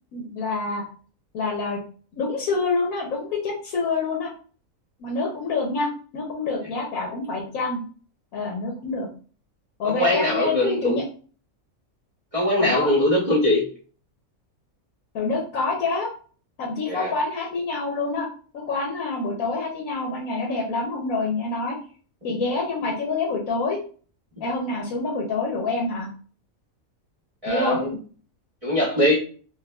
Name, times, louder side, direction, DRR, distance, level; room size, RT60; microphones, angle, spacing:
voice 1, 0.1-0.8 1.3-1.8 2.1-4.3 5.0-5.9 6.1-7.8 8.3-9.1 9.8-11.0 12.6-12.9 15.1-16.1 16.6-18.3 18.5-21.8 22.2-23.8 24.4-26.1 27.5-27.8, left 3 dB, 80° left, -2 dB, 1.2 m, -26 dB
voice 2, 9.8-11.0 12.3-13.7 16.9-17.1 22.3-22.4 27.4-28.0 28.6-29.1, left 1 dB, 30° right, -6 dB, 0.8 m, -22 dB
4.9 x 2.1 x 2.2 m, 0.41 s
omnidirectional pair, 1.5 m